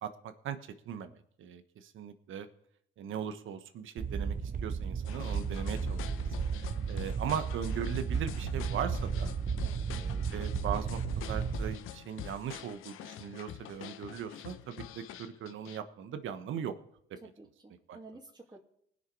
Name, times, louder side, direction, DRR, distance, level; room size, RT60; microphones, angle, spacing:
voice 1, 0.0-2.5 3.0-4.4 4.6-6.2 6.6-9.3 9.9-16.7 17.9-18.0, right 8 dB, 70° right, 11 dB, 1.2 m, -39 dB
sound 1, 4.0-11.7, right 6 dB, 40° right, 0.9 m, -34 dB
sound 2, 5.0-15.8, left 9 dB, 80° left, 0.9 m, -45 dB
voice 2, 17.2-18.6, right 2 dB, 20° right, -3 dB, 2.4 m, -52 dB
19.5 x 6.6 x 4.8 m, 0.71 s
supercardioid pair, 60°, 21 cm